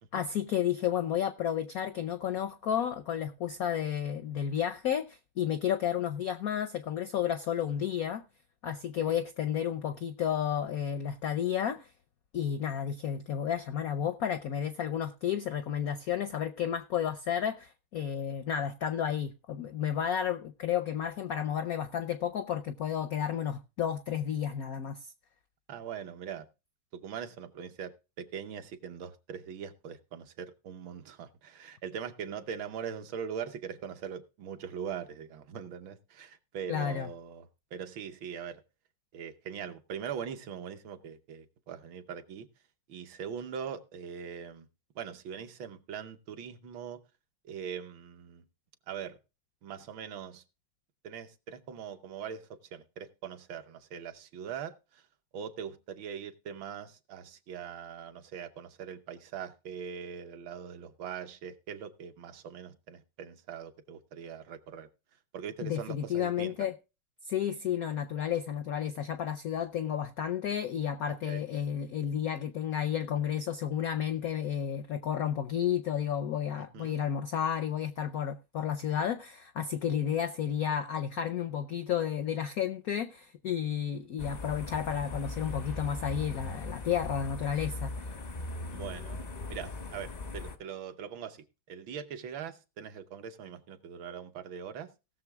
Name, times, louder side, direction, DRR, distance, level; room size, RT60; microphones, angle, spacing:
voice 1, 0.1-8.2 8.6-11.9 12.3-25.1 36.7-37.1 65.6-66.8 67.2-87.9, left 9 dB, 75° left, 0.8 m, -32 dB
voice 2, 25.7-26.5 26.9-38.6 39.1-42.5 42.9-44.7 44.9-47.0 47.4-48.4 48.9-49.2 49.6-50.4 51.0-55.0 55.3-64.9 65.3-66.5 71.2-71.4 76.7-77.0 88.7-89.2 89.5-94.9, right 7 dB, 70° right, 1.6 m, -41 dB
sound 1, 84.2-90.6, left 2 dB, 50° left, 0.5 m, -39 dB
17.5 x 6.8 x 3.5 m
omnidirectional pair, 2.3 m